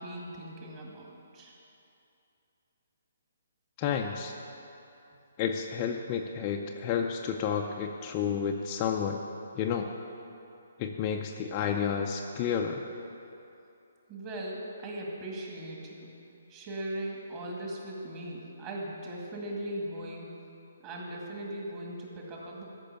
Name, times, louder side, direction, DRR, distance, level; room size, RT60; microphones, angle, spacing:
voice 1, 0.0-1.5 14.1-16.1 16.5-20.4 20.8-22.6, right 1 dB, 25° right, -2 dB, 2.0 m, -39 dB
voice 2, 3.8-4.3 5.4-9.2 9.6-9.9 10.8-12.8, left 7 dB, 25° left, 2 dB, 0.5 m, -31 dB
14.0 x 6.0 x 8.6 m, 2.8 s
hypercardioid pair, 165°, 0 cm